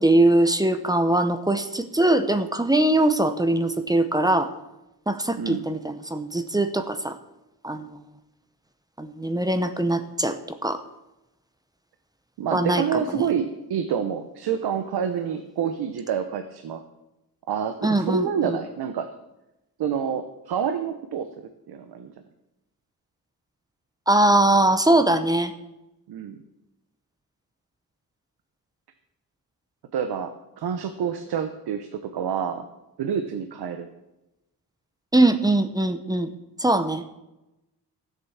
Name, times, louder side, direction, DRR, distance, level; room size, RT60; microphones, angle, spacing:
voice 1, 0.0-4.5 5.1-7.2 7.6-8.0 9.0-10.8 12.5-13.2 17.8-18.6 24.1-25.5 35.1-36.3 36.6-37.0, right 1 dB, 10° right, 9 dB, 0.8 m, -21 dB
voice 2, 12.4-16.8 17.5-19.1 19.8-21.3 21.7-22.1 26.1-26.4 29.9-32.7 33.0-33.9, right 7 dB, 90° right, 8 dB, 1.0 m, -28 dB
14.5 x 7.8 x 7.2 m, 0.96 s
wide cardioid pair, 140°, 38 cm